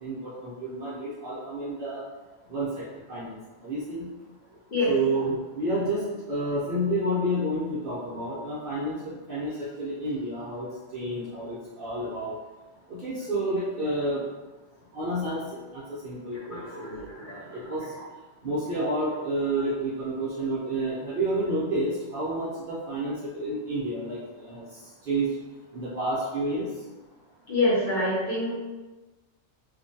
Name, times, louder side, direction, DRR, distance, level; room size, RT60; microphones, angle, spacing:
voice 1, 0.0-2.0 2.5-2.8 3.1-3.3 3.6-4.0 4.9-6.0 6.3-9.5 9.8-10.7 10.9-12.3 12.9-14.2 14.9-15.4 15.7-17.8 18.4-24.2 24.5-24.6 25.1-25.3 25.7-26.6, right 1 dB, 60° right, -8 dB, 0.6 m, -29 dB
voice 2, 16.3-17.7 18.7-18.9 27.5-28.5, left 2 dB, 45° left, -9 dB, 0.7 m, -27 dB
2.4 x 2.2 x 2.6 m, 1.2 s
omnidirectional pair, 1.4 m